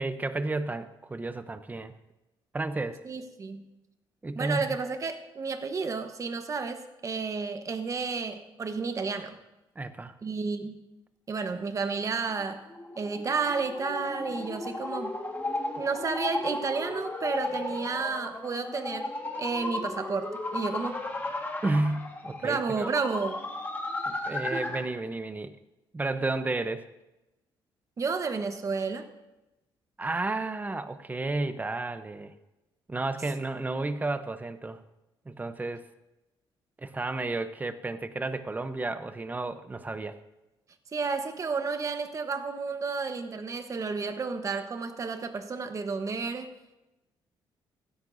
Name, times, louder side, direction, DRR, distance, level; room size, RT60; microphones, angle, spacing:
voice 1, 0.0-1.9 2.5-3.0 4.2-4.7 9.8-10.1 21.6-22.9 24.1-25.5 25.9-26.8 30.0-32.3 32.9-34.8 35.3-35.8 36.8-40.2, right 2 dB, 20° right, 11 dB, 0.7 m, -32 dB
voice 2, 3.0-3.6 4.3-9.4 10.2-10.8 11.3-12.6 13.0-15.2 15.8-19.1 19.4-21.0 22.4-23.4 24.5-24.7 28.0-29.1 40.9-46.5, right 4 dB, 35° right, 7 dB, 1.1 m, -31 dB
sound 1, 12.3-25.0, left 2 dB, 20° left, 1.6 m, -35 dB
15.5 x 13.0 x 2.7 m, 1.0 s
cardioid pair, 115°, 9 cm